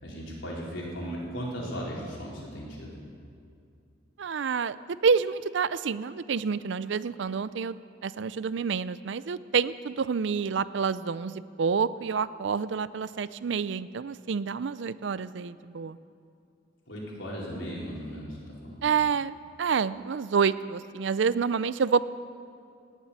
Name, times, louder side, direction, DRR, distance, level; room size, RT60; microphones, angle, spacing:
voice 1, 0.0-2.9 16.9-18.9, equal, 75° left, -5 dB, 4.5 m, -37 dB
voice 2, 4.2-4.8 5.0-16.0 18.8-22.0, right 6 dB, 65° right, 16 dB, 0.4 m, -28 dB
18.5 x 7.5 x 9.7 m, 2.4 s
head